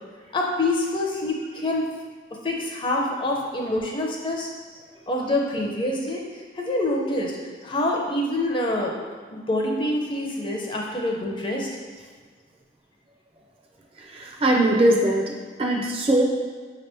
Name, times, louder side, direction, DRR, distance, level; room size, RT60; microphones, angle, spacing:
voice 1, 0.3-1.9 2.4-4.5 5.1-7.4 7.6-8.9 9.3-11.7, left 1 dB, 25° left, -1 dB, 0.5 m, -26 dB
voice 2, 14.0-15.3 15.6-16.2, right 1 dB, 30° right, 0 dB, 0.5 m, -21 dB
5.6 x 2.9 x 3.3 m, 1.5 s
head